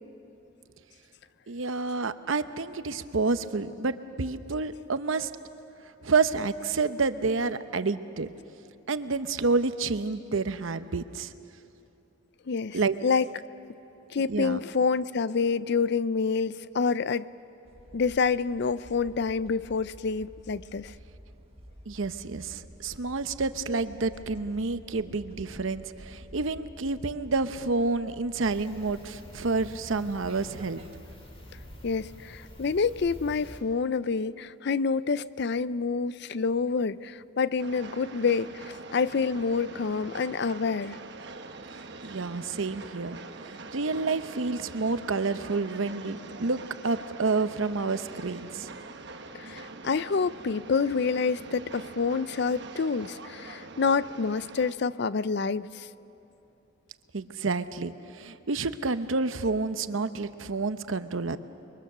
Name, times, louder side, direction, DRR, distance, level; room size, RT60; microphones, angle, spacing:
voice 1, 1.5-5.3 6.0-8.3 8.9-11.3 12.7-12.9 14.3-14.6 21.9-30.8 42.0-43.2 43.4-48.7 57.1-61.4, right 3 dB, 75° right, 11 dB, 0.8 m, -29 dB
voice 2, 12.5-13.3 14.1-17.3 17.9-20.9 31.8-41.0 49.3-55.9, left 5 dB, 55° left, 17 dB, 0.5 m, -27 dB
sound 1, 17.7-33.4, equal, 30° right, 1.5 m, -50 dB
sound 2, 28.4-33.6, equal, 30° left, 2.5 m, -48 dB
Train, 37.6-54.7, right 3 dB, 55° right, 1.2 m, -44 dB
29.5 x 23.0 x 6.7 m, 2.9 s
head